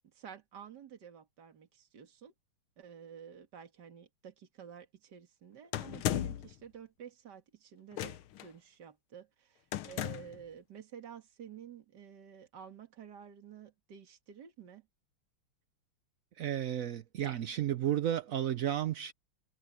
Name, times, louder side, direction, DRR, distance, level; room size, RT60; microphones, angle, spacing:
voice 1, 0.0-2.3 2.8-14.9, right 8 dB, 55° right, 2.5 m, -51 dB
sound 1, 5.7-6.5 7.9-8.4 9.7-10.4, left 12 dB, 75° left, 1.7 m, -35 dB
voice 2, 16.4-19.1, right 11 dB, 80° right, 0.7 m, -32 dB
omnidirectional pair, 2.3 m